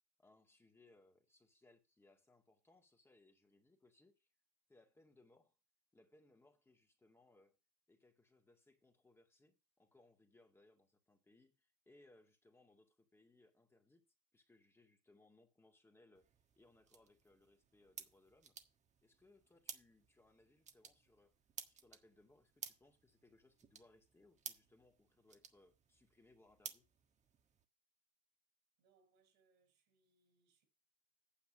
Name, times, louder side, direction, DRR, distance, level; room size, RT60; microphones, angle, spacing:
voice 1, 0.2-4.3 4.7-5.6 5.9-7.6 7.9-14.1 14.3-16.3 16.6-18.6 19.0-21.3 21.7-26.9, left 2 dB, 15° left, 2.0 m, -69 dB
sound 1, 16.1-27.6, right 7 dB, 40° right, 1.6 m, -56 dB
voice 2, 28.8-30.7, right 4 dB, 75° right, 5.5 m, -77 dB
9.1 x 7.0 x 6.0 m
supercardioid pair, 95°, 19 cm